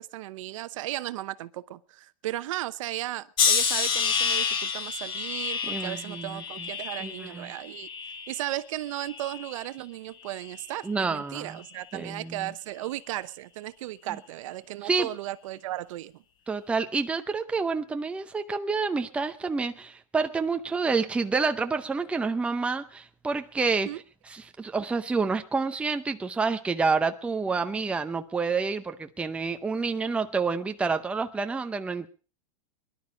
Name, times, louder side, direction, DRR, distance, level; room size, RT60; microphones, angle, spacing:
voice 1, 0.0-7.9 8.3-16.2 23.8-24.0, right 15 dB, 65° right, 0.9 m, -35 dB
sound 1, 3.4-8.5 9.0-9.7 10.4-10.7, left 6 dB, 25° left, 1.5 m, -29 dB
voice 2, 5.6-6.7 7.0-7.5 10.8-11.6 11.9-12.5 14.8-15.1 16.5-23.9 24.3-32.1, right 4 dB, 5° right, 0.7 m, -28 dB
21.0 x 11.5 x 5.1 m
supercardioid pair, 155°, 18 cm